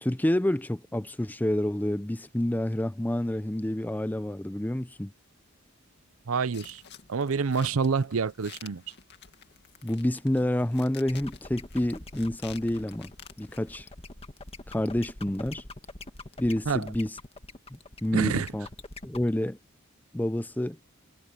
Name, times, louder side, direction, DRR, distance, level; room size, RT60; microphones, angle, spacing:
voice 1, 0.0-5.1 9.8-13.1 13.4-13.9 14.7-15.6 16.4-17.2 17.7-18.7 19.0-19.6 20.1-20.8, left 1 dB, 10° left, 0.6 m, -28 dB
voice 2, 6.3-6.8 7.1-8.8 16.7-16.9 18.1-18.5, right 5 dB, 70° right, 0.6 m, -27 dB
sound 1, 6.5-13.7, left 8 dB, 50° left, 2.3 m, -51 dB
sound 2, 11.1-19.3, left 2 dB, 25° left, 1.7 m, -44 dB
head